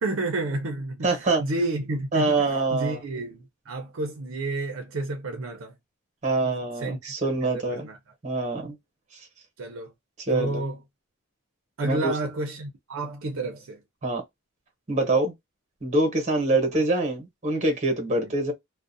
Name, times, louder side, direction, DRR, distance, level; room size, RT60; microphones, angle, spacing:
voice 1, 0.0-5.7 6.4-7.1 7.4-8.0 9.6-9.9 10.3-10.8 11.8-13.8 18.1-18.2, right 2 dB, 65° right, 0.6 m, -31 dB
voice 2, 1.0-1.4 2.1-3.0 6.2-7.9 8.2-8.8 9.1-9.2 10.3-10.6 11.8-12.1 14.0-14.2 14.9-15.3 15.8-18.5, right 2 dB, 35° right, 0.9 m, -25 dB
2.4 x 2.1 x 2.5 m
head